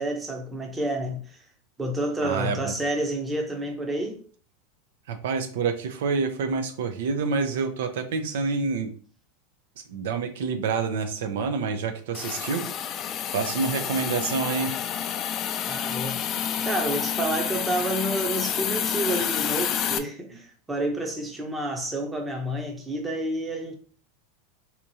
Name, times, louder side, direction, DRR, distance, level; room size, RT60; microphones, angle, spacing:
voice 1, 0.0-1.4 1.8-4.2 15.6-16.2 16.6-23.7, right 1 dB, 10° right, 0.7 m, -29 dB
voice 2, 2.2-2.7 5.1-8.9 9.9-12.7 13.3-14.7, right 5 dB, 80° right, 0.6 m, -27 dB
Hiss, 12.1-20.0, left 9 dB, 35° left, 0.3 m, -29 dB
3.5 x 2.9 x 2.7 m
supercardioid pair, 140°, 0 cm